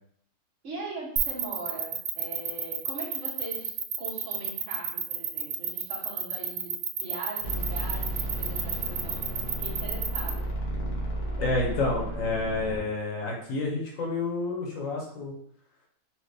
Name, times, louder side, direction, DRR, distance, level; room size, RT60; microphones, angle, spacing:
voice 1, 0.6-6.7 7.0-10.5, right 2 dB, 55° right, -3 dB, 1.4 m, -41 dB
sound 1, 1.2-10.3, right 8 dB, 80° right, 1.1 m, -30 dB
sound 2, 7.4-12.8, right 1 dB, 90° left, 1.5 m, -33 dB
voice 2, 11.4-15.3, left 3 dB, 65° left, -1 dB, 1.1 m, -29 dB
4.3 x 2.5 x 3.3 m, 0.66 s
omnidirectional pair, 1.6 m